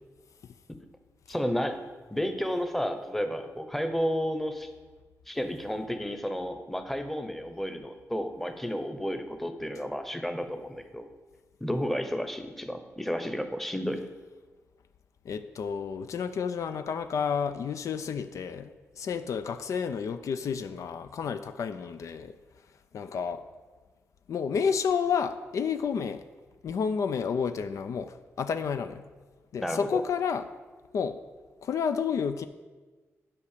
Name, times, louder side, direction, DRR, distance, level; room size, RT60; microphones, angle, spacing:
voice 1, 1.3-1.8 2.1-4.7 5.3-11.1 11.6-14.0 29.6-30.0, equal, 5° left, 7 dB, 0.8 m, -32 dB
voice 2, 15.3-22.4 22.9-23.4 24.3-26.2 26.6-29.0 29.5-30.5 30.9-31.2 31.6-32.5, left 6 dB, 75° left, 10 dB, 0.4 m, -30 dB
8.4 x 5.1 x 6.7 m, 1.3 s
cardioid pair, 75°, 5 cm